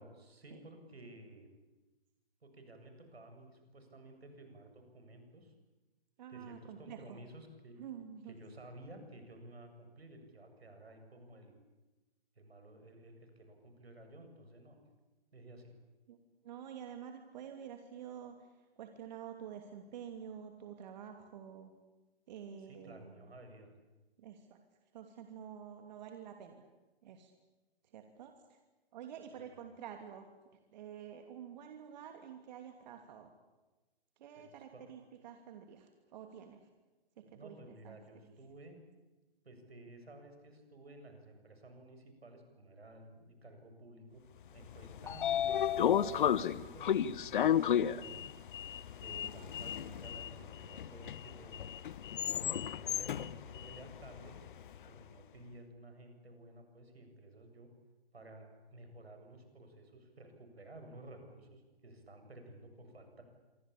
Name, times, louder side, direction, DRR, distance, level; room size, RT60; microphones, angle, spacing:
voice 1, 0.0-1.5 2.4-5.5 6.3-7.7 8.2-11.5 12.4-14.9 15.3-15.7 22.7-23.7 29.3-29.4 34.4-34.8 37.2-38.8 39.4-44.2 44.5-48.2 49.0-51.6 52.2-54.4 54.9-57.7 58.1-63.2, right 1 dB, 80° right, 6 dB, 7.7 m, -54 dB
voice 2, 6.2-7.2 7.8-8.3 16.1-16.2 16.4-21.7 22.3-23.2 24.2-24.6 24.9-26.6 27.0-27.3 27.9-28.6 28.9-30.3 30.7-33.3 34.2-36.7 37.2-37.6 37.8-38.0, right 8 dB, 45° right, 5 dB, 2.9 m, -49 dB
Sliding door, 44.6-54.8, left 9 dB, 55° left, 1.1 m, -33 dB
26.5 x 24.5 x 8.7 m, 1.2 s
figure-of-eight pair, 125°, 31 cm